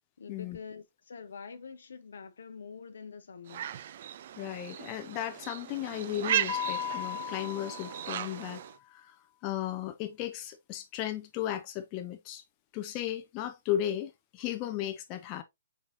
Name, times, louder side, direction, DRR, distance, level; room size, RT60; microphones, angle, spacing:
voice 1, 0.2-3.7, left 5 dB, 70° left, 0.7 m, -46 dB
sound 1, 3.5-8.8, right 11 dB, 55° right, 0.3 m, -36 dB
voice 2, 4.4-8.6 8.9-9.2 9.4-12.4 12.7-15.4, left 12 dB, 35° left, 0.5 m, -35 dB
Mallet percussion, 6.5-8.5, left 12 dB, 55° left, 1.6 m, -37 dB
4.3 x 4.0 x 2.5 m
hypercardioid pair, 125°, 0 cm